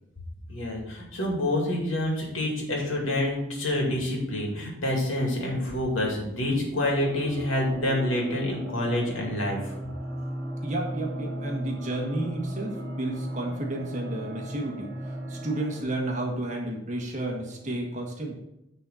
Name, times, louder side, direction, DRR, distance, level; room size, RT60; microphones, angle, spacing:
voice 1, 0.5-9.7, left 1 dB, 85° left, -1 dB, 2.4 m, -27 dB
sound 1, 7.0-15.8, right 1 dB, ahead, 2.6 m, -36 dB
voice 2, 10.6-14.9 15.3-18.4, right 1 dB, 35° right, 0 dB, 1.5 m, -31 dB
8.9 x 4.1 x 5.7 m, 0.85 s
head